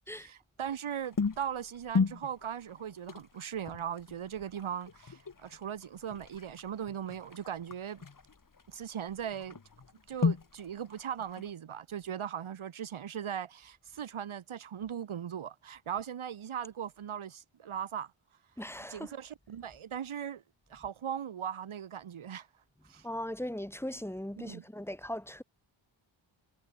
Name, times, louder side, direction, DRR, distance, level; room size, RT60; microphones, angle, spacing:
voice 1, 0.1-8.0 8.7-9.6 10.1-18.1 18.9-20.4 20.7-22.5 22.8-23.1 24.4-24.6, right 9 dB, 85° right, 1.9 m, -39 dB
sound 1, 0.9-11.5, left 5 dB, 40° left, 2.8 m, -37 dB
voice 2, 18.6-19.1 23.0-25.4, left 1 dB, 5° left, 3.6 m, -39 dB
wide cardioid pair, 90°, 48 cm